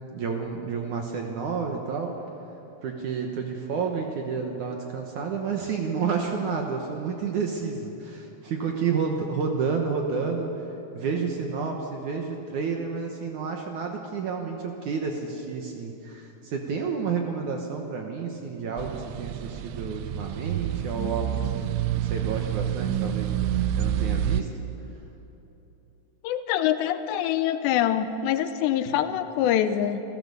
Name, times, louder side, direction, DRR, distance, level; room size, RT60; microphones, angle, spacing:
voice 1, 0.1-2.1 2.8-10.5 10.9-23.3 23.8-24.5 28.9-29.0, right 5 dB, 65° right, 2 dB, 2.1 m, -30 dB
sound 1, 18.8-24.4, right 10 dB, 85° right, 2.8 m, -28 dB
voice 2, 26.2-30.0, left 10 dB, 90° left, 11 dB, 3.0 m, -25 dB
27.5 x 15.0 x 6.9 m, 3.0 s
omnidirectional pair, 4.9 m